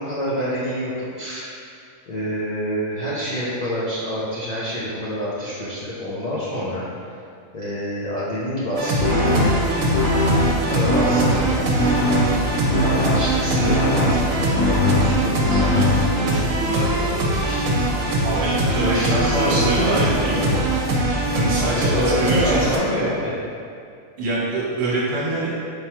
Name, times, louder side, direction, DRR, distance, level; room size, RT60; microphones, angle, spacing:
voice 1, 0.0-1.5 2.1-6.8 7.5-9.5 10.4-11.5 11.8-11.9 12.7-15.9 16.2-18.0 18.8-20.8 21.5-23.3, equal, 55° left, -10 dB, 0.4 m, -27 dB
sound 1, 8.8-22.8, right 1 dB, 80° right, 1.0 m, -22 dB
sound 2, 9.0-16.4, left 1 dB, 85° left, 1.1 m, -22 dB
voice 2, 18.2-20.6 21.3-22.6 24.2-25.5, right 2 dB, 55° right, -6 dB, 1.0 m, -24 dB
4.9 x 2.3 x 2.9 m, 2.4 s
omnidirectional pair, 1.4 m